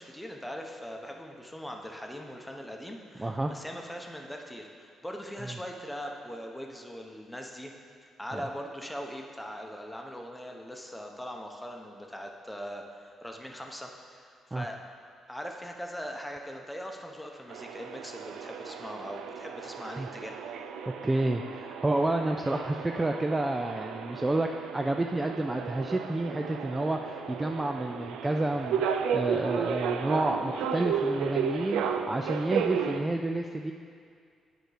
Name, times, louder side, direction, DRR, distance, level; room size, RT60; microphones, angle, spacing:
voice 1, 0.0-7.7 8.0-14.8 15.3-20.4, equal, 5° left, 2 dB, 0.9 m, -41 dB
voice 2, 3.2-3.5 8.3-8.4 14.5-14.7 20.0-20.1 21.0-33.7, right 2 dB, 15° right, 4 dB, 0.3 m, -30 dB
sound 1, 17.5-33.0, right 7 dB, 90° right, 0.4 m, -34 dB
9.2 x 4.5 x 4.9 m, 2.2 s
cardioid pair, 90°, 0 cm